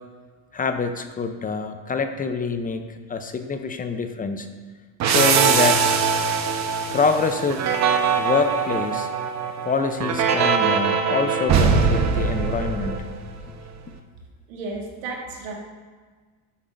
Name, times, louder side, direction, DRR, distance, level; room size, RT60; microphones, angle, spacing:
voice 1, 0.5-4.5 5.0-5.8 6.9-7.6 8.2-9.1 9.6-13.0, left 4 dB, 20° left, 7 dB, 0.6 m, -25 dB
sound 1, 5.0-13.5, right 6 dB, 45° right, 0.9 m, -22 dB
voice 2, 14.5-15.5, right 3 dB, 85° right, 0 dB, 1.7 m, -33 dB
11.0 x 8.4 x 2.6 m, 1.5 s
supercardioid pair, 105°, 38 cm